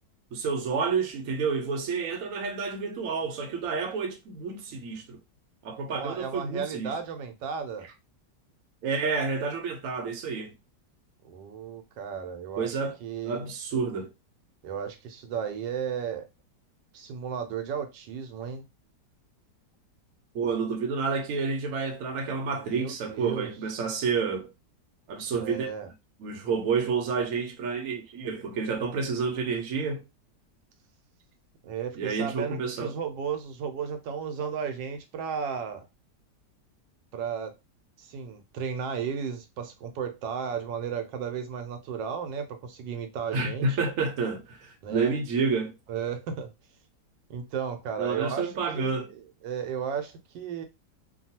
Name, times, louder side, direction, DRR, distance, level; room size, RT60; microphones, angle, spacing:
voice 1, 0.3-5.2 5.6-6.9 8.8-10.5 12.6-13.0 13.2-14.1 20.3-24.5 25.1-25.7 26.2-30.0 32.0-32.9 43.3-45.7 48.0-49.1, right 5 dB, 60° right, 1.0 m, -29 dB
voice 2, 5.9-7.9 11.2-12.7 13.0-13.5 14.6-16.3 16.9-18.7 22.5-23.5 25.4-25.9 31.6-35.9 37.1-37.5 38.0-43.8 44.8-45.1 45.9-46.5 47.3-50.6, right 7 dB, 85° right, 1.3 m, -34 dB
3.0 x 2.2 x 2.8 m
omnidirectional pair, 1.9 m